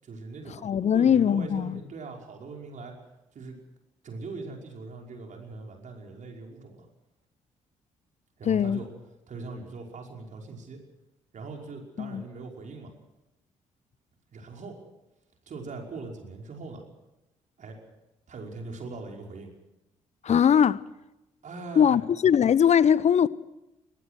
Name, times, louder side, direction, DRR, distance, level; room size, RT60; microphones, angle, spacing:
voice 1, 0.0-2.9 3.3-3.6 4.0-6.9 8.4-8.9 9.3-10.8 11.3-12.9 14.3-14.8 15.5-16.8 17.6-17.8 18.3-19.5 21.4-22.0, right 3 dB, 50° right, 5.5 m, -41 dB
voice 2, 0.6-1.8 8.5-8.8 12.0-12.2 20.2-20.8 21.8-23.3, left 8 dB, 45° left, 0.9 m, -21 dB
24.0 x 18.5 x 6.3 m
hypercardioid pair, 45°, 16 cm